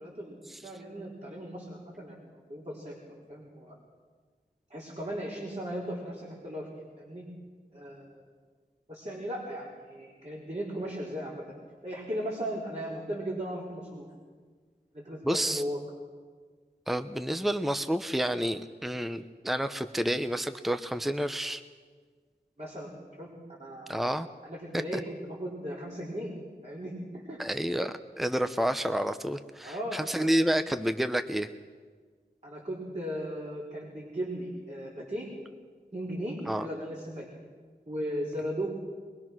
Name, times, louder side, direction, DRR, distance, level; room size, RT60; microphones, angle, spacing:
voice 1, 0.0-3.7 4.7-6.7 7.0-7.3 7.7-8.3 8.9-11.4 11.8-14.1 14.9-15.8 22.6-22.9 23.2-23.3 23.6-24.0 24.4-26.3 26.6-27.4 29.6-30.5 32.4-35.3 35.9-37.3 37.9-38.7, equal, 40° right, -5 dB, 4.6 m, -37 dB
voice 2, 15.2-15.6 16.9-21.6 23.9-24.3 24.7-25.0 27.4-31.5 36.5-36.7, right 1 dB, ahead, 10 dB, 0.8 m, -29 dB
23.0 x 22.0 x 6.2 m, 1.5 s
wide cardioid pair, 45°, 18 cm